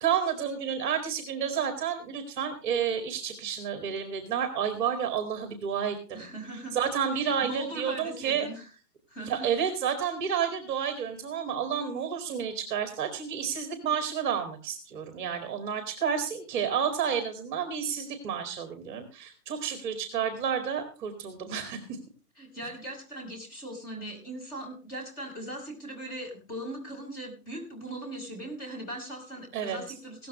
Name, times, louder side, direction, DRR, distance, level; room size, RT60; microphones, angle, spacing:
voice 1, 0.0-6.2 6.7-8.5 9.2-21.8 29.5-29.8, right 8 dB, 30° right, 7 dB, 2.0 m, -30 dB
voice 2, 6.1-6.8 7.1-8.7 9.1-9.5 22.4-30.3, right 1 dB, 20° left, 0 dB, 5.2 m, -39 dB
17.0 x 13.5 x 3.1 m, 0.35 s
hypercardioid pair, 165°, 47 cm